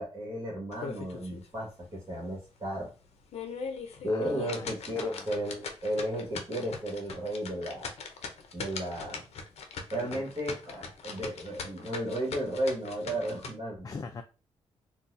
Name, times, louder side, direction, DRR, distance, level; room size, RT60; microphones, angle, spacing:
voice 1, 0.0-2.9 4.0-7.9 8.5-9.2 9.9-13.8, equal, 30° right, -3 dB, 1.5 m, -34 dB
sound 1, 0.7-1.5 1.8-1.9 2.4-2.5 3.1-13.5, left 5 dB, 80° left, 0.6 m, -41 dB
voice 2, 4.1-5.3 9.9-10.2 13.8-14.2, left 4 dB, 35° left, 6 dB, 0.4 m, -43 dB
3.9 x 2.3 x 2.5 m, 0.32 s
cardioid pair, 100°, 11 cm